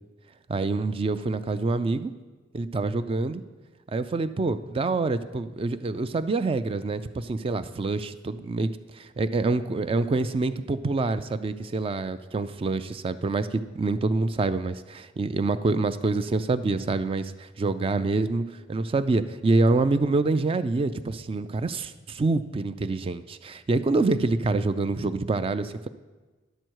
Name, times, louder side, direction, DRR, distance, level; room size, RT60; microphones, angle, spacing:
voice 1, 0.5-2.1 2.5-3.4 3.9-8.7 8.9-18.4 18.7-25.9, right 3 dB, 30° right, 13 dB, 0.3 m, -26 dB
10.0 x 7.7 x 4.6 m, 1.2 s
head